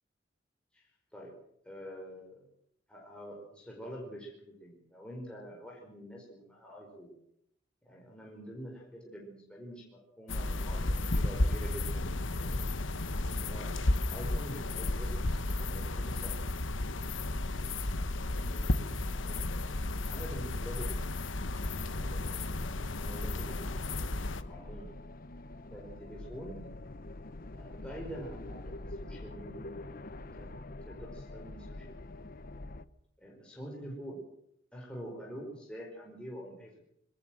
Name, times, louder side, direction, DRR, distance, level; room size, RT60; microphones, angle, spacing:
voice 1, 0.7-1.3 1.6-2.5 2.9-7.1 7.8-12.6 13.3-13.7 14.1-16.4 17.7-18.0 18.5-19.6 20.1-21.1 21.4-22.3 23.0-23.7 24.5-24.9 25.7-26.6 27.5-29.9 30.2-30.5 30.9-32.3 33.2-34.2 34.7-36.7, equal, 5° left, -2 dB, 4.9 m, -46 dB
sound 1, 10.3-24.4, left 2 dB, 75° left, 1.3 m, -33 dB
sound 2, 21.4-32.8, left 2 dB, 45° left, 0.9 m, -45 dB
22.0 x 18.5 x 7.7 m, 0.74 s
head